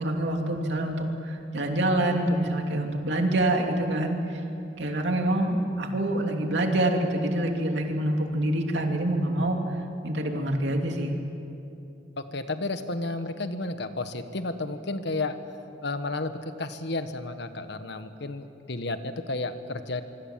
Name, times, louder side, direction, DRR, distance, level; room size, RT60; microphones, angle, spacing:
voice 1, 0.0-4.2 4.7-9.6 10.0-11.1, right 1 dB, 70° right, 2 dB, 2.9 m, -26 dB
voice 2, 12.2-15.4 15.8-16.3 16.6-20.0, left 2 dB, 65° left, 9 dB, 1.4 m, -32 dB
25.5 x 24.0 x 7.5 m, 2.7 s
head